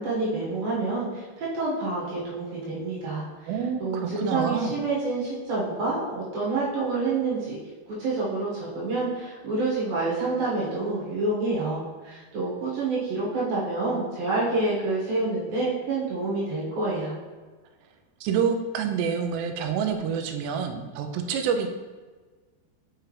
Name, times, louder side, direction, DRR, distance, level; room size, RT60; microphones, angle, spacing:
voice 1, 0.0-3.3 3.8-7.6 8.0-17.1, right 3 dB, 65° right, -6 dB, 3.1 m, -28 dB
voice 2, 3.5-4.8 18.2-21.7, right 7 dB, 85° right, 6 dB, 2.8 m, -27 dB
6.4 x 5.8 x 3.2 m, 1.4 s
omnidirectional pair, 4.7 m